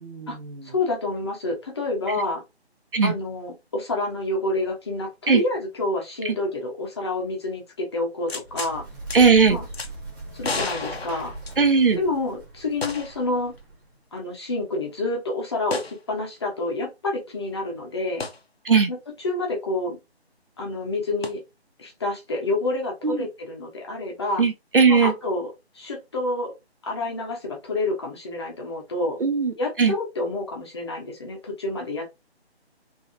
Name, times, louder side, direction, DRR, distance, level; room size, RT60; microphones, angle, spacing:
voice 1, 0.0-0.7 2.9-3.1 5.3-5.4 6.2-6.3 9.1-9.6 11.6-12.0 18.6-18.9 23.0-23.3 24.4-25.1 29.2-29.5 29.8-29.9, right 5 dB, 55° right, 0.8 m, -19 dB
voice 2, 0.6-2.4 3.0-8.9 9.5-9.6 10.3-11.3 12.0-13.5 14.1-18.3 18.9-19.0 19.2-20.0 20.6-21.4 21.8-24.4 24.9-25.5 25.7-26.5 26.8-29.2 29.6-32.1, left 2 dB, 25° left, 0.9 m, -28 dB
Bird, 8.2-14.0, right 2 dB, 20° right, 1.2 m, -40 dB
sound 1, 8.3-8.7 9.1-9.2 9.7-9.9 10.4-11.9 12.8-13.3 13.6-13.7 15.7-16.0 18.2-18.4 21.2-21.3, left 4 dB, 70° left, 0.9 m, -32 dB
3.9 x 2.8 x 2.6 m
figure-of-eight pair, 155°, 32 cm